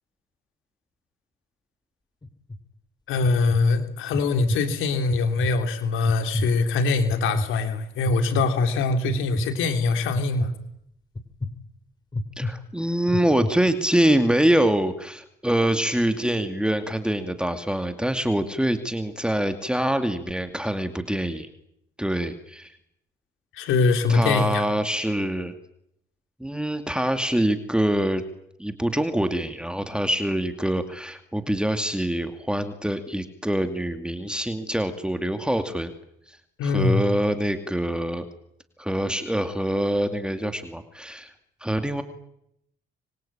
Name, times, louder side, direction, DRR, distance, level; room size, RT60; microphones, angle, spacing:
sound 1, 2.2-2.6 3.1-3.6 4.1-4.6 5.1-5.5 6.1-6.5 7.1-7.5 8.1-8.4 9.1-9.5 10.1-10.5 11.2-11.5 12.1-12.5 13.1-13.5, left 2 dB, 20° left, 3.3 m, -28 dB
voice 1, 3.1-10.5 23.5-24.6 36.6-37.0, left 3 dB, 90° left, 7 dB, 3.4 m, -23 dB
voice 2, 12.4-21.5 22.0-22.8 24.1-25.5 26.4-28.2 28.6-35.9 36.3-38.2 38.8-41.3 41.6-42.0, right 1 dB, 5° right, 8 dB, 2.4 m, -25 dB
25.5 x 23.5 x 8.9 m, 0.76 s
cardioid pair, 90°, 20 cm